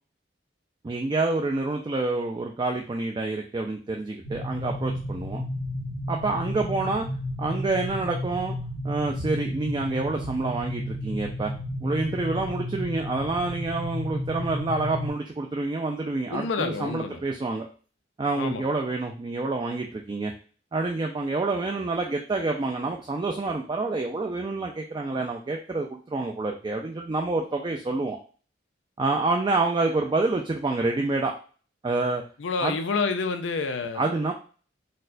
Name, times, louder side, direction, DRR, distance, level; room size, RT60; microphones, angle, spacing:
voice 1, 0.8-5.4 6.1-7.1 7.4-8.6 8.8-11.5 11.8-17.7 18.2-20.3 20.7-28.2 29.0-31.3 31.8-32.2 32.6-32.8 33.9-34.3, right 3 dB, 25° right, 2 dB, 0.3 m, -27 dB
sound 1, 4.2-15.1, left 1 dB, 60° right, 1.2 m, -33 dB
voice 2, 16.3-17.2 18.4-18.6 32.4-34.2, left 4 dB, 90° left, 8 dB, 0.5 m, -28 dB
4.2 x 2.1 x 2.5 m, 0.38 s
head